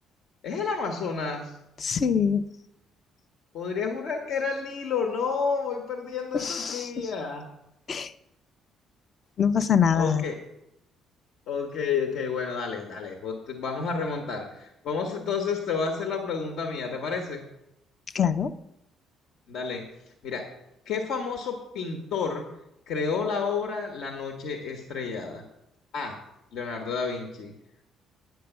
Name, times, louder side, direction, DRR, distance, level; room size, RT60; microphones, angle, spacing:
voice 1, 0.4-1.5 3.5-7.5 9.9-10.4 11.5-17.4 19.5-19.8 20.2-20.4 20.9-22.5 22.9-25.4 25.9-26.2 26.5-27.5, left 5 dB, 65° left, 4 dB, 1.3 m, -30 dB
voice 2, 1.8-2.4 6.3-7.1 7.9-8.1 9.4-10.3 18.1-18.5, left 7 dB, 35° left, 14 dB, 0.5 m, -24 dB
9.4 x 6.6 x 7.9 m, 0.85 s
cardioid pair, 160°, 0 cm